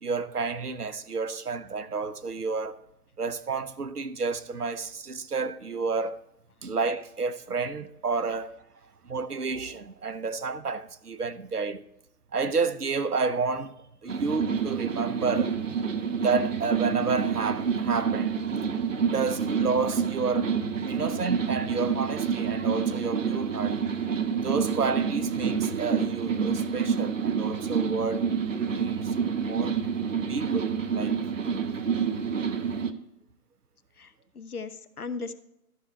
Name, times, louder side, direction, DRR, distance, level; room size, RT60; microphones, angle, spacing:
voice 1, 0.0-2.8 3.2-6.2 6.6-8.6 9.0-11.9 12.3-15.5 16.2-18.3 19.0-20.5 20.9-23.8 24.4-29.7 30.3-31.7, right 4 dB, 85° right, 0.9 m, -30 dB
sound 1, 14.1-32.9, right 6 dB, 55° right, 0.9 m, -28 dB
voice 2, 34.0-35.3, left 4 dB, 75° left, 1.0 m, -37 dB
13.0 x 6.6 x 4.2 m
figure-of-eight pair, 145°, 45 cm